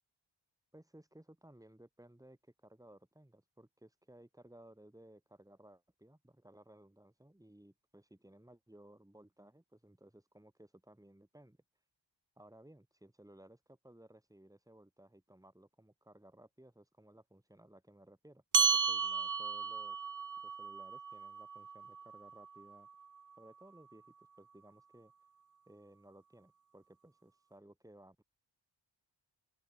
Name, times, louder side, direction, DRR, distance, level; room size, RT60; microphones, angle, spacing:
voice 1, 0.7-11.6 12.4-20.0 20.4-22.9 23.4-25.1 25.7-28.2, right 1 dB, 5° right, 7.9 m, -59 dB
sound 1, 18.5-23.3, right 6 dB, 40° right, 1.6 m, -34 dB
open air
wide cardioid pair, 150°, 45 cm